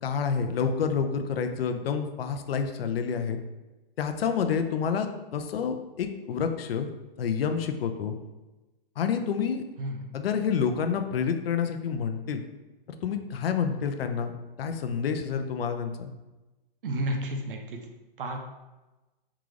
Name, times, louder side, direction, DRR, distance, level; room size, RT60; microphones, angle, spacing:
voice 1, 0.0-3.4 4.0-6.9 7.2-8.1 9.0-9.6 10.1-12.4 13.0-16.1, left 6 dB, 80° left, 7 dB, 0.5 m, -28 dB
voice 2, 16.8-17.8 18.2-18.4, right 1 dB, 65° right, 3 dB, 0.7 m, -31 dB
3.7 x 2.4 x 3.2 m, 1.1 s
hypercardioid pair, 180°, 29 cm